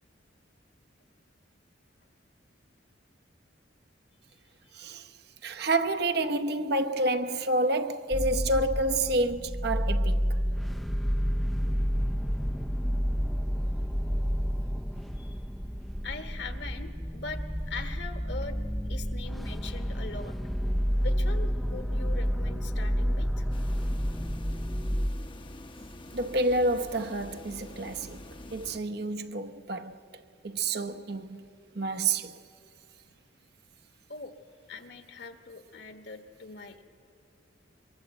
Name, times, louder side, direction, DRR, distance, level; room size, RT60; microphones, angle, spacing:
voice 1, 4.7-5.1 5.4-10.4 26.1-28.2 28.5-30.0 30.4-31.5 31.7-32.3, right 2 dB, 55° right, 0.9 m, -29 dB
sound 1, 8.1-25.1, equal, ahead, 0.5 m, -30 dB
voice 2, 15.1-15.4 16.0-18.6 18.9-20.4 21.0-23.5 25.5-25.6 34.1-34.3 34.7-36.8, left 4 dB, 60° left, 1.5 m, -42 dB
sound 2, 23.5-28.8, left 1 dB, 25° left, 0.8 m, -45 dB
23.0 x 23.0 x 7.8 m
head